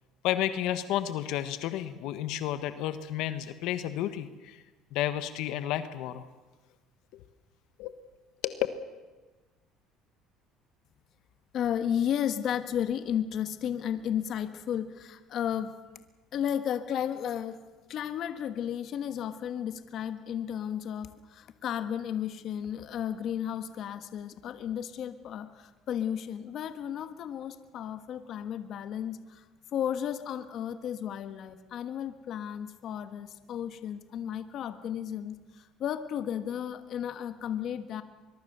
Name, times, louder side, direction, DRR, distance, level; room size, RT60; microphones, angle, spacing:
voice 1, 0.2-4.6 4.9-6.3 7.1-7.2 7.8-7.9 8.4-8.6, left 12 dB, 75° left, 11 dB, 1.3 m, -32 dB
voice 2, 11.5-15.7 16.3-17.6 17.9-29.4 29.7-38.0, left 9 dB, 50° left, 10 dB, 1.4 m, -33 dB
24.0 x 22.5 x 6.8 m, 1.2 s
cardioid pair, 135°, 0 cm